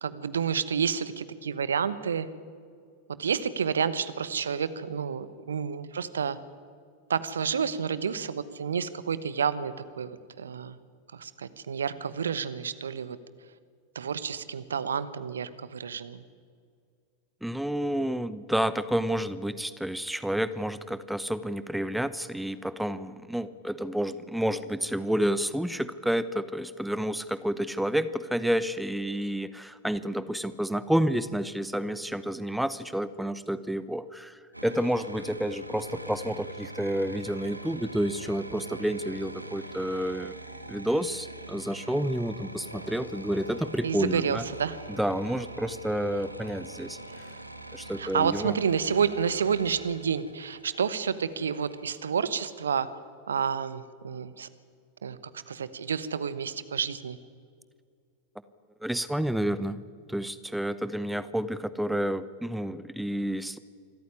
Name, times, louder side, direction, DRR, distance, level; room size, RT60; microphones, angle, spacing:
voice 1, 0.0-2.3 3.2-6.4 7.1-10.8 11.1-13.2 13.9-16.2 43.8-44.8 48.0-52.9 53.3-54.5 55.0-55.2 55.5-57.2, right 7 dB, 70° right, 15 dB, 1.1 m, -29 dB
voice 2, 17.4-40.3 40.7-44.4 44.9-47.0 47.7-48.6 58.8-59.8 60.1-63.6, equal, ahead, 15 dB, 0.8 m, -30 dB
sound 1, 34.5-51.8, right 1 dB, 85° right, 1.7 m, -43 dB
26.0 x 14.0 x 9.9 m, 2.2 s
figure-of-eight pair, 90°, 0 cm